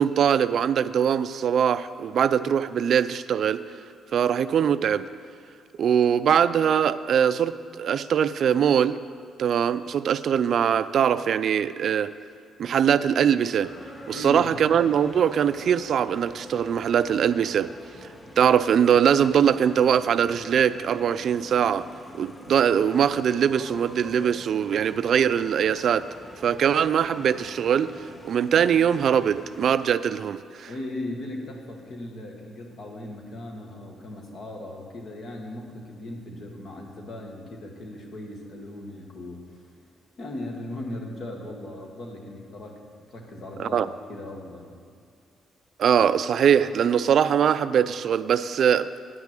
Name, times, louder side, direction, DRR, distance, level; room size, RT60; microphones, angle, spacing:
voice 1, 0.0-3.6 4.1-5.0 5.8-9.0 9.4-12.1 12.6-13.7 14.1-17.7 18.0-18.1 18.4-21.8 22.1-26.0 26.4-27.9 28.2-30.7 43.6-43.9 45.8-48.9, right 8 dB, 65° right, 14 dB, 0.3 m, -22 dB
sound 1, 13.6-29.9, left 1 dB, 25° left, 1.0 m, -45 dB
voice 2, 14.1-14.6 30.7-39.6 40.2-42.8 43.1-43.8 44.1-44.7, left 1 dB, 60° left, 1 dB, 1.7 m, -37 dB
9.5 x 5.9 x 7.6 m, 2.3 s
cardioid pair, 90°, 0 cm